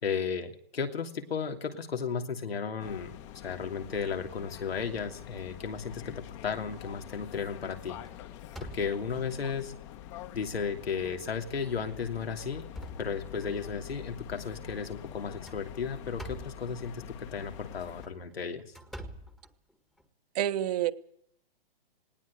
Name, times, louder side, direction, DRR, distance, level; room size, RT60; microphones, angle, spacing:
voice 1, 0.0-3.2 3.4-8.0 8.6-9.7 10.3-12.6 13.0-18.6, left 6 dB, 90° left, 4 dB, 3.0 m, -34 dB
sound 1, 2.8-18.1, left 11 dB, 30° left, 1.4 m, -46 dB
sound 2, 6.4-6.7 7.1-7.4 7.7-9.3 10.0-10.1 10.5-10.6 11.5-11.8 12.2-13.7 15.2-16.7 17.8-20.1, equal, ahead, 1.5 m, -47 dB
voice 2, 20.3-20.9, right 12 dB, 40° right, 10 dB, 1.3 m, -28 dB
19.5 x 18.0 x 8.3 m, 0.71 s
hypercardioid pair, 150°, 30 cm